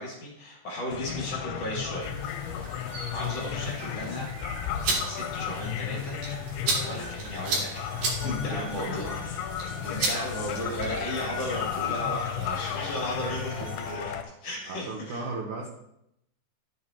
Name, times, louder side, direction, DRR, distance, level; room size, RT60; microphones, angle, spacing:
voice 1, 0.0-2.2 2.5-2.6 3.1-4.3 5.0-6.2 6.8-9.4 9.8-14.1 14.4-15.2, left 1 dB, 40° left, -4 dB, 2.9 m, -35 dB
sound 1, 0.9-14.2, left 9 dB, 85° left, 3.0 m, -34 dB
sound 2, 2.0-14.0, left 1 dB, 45° right, 2.5 m, -44 dB
sound 3, 4.6-11.1, right 3 dB, 60° right, 4.3 m, -33 dB
voice 2, 7.9-9.2 9.5-10.1 13.2-13.7 14.6-15.7, right 3 dB, 85° right, -1 dB, 1.7 m, -38 dB
13.5 x 7.5 x 3.0 m, 0.81 s
omnidirectional pair, 5.3 m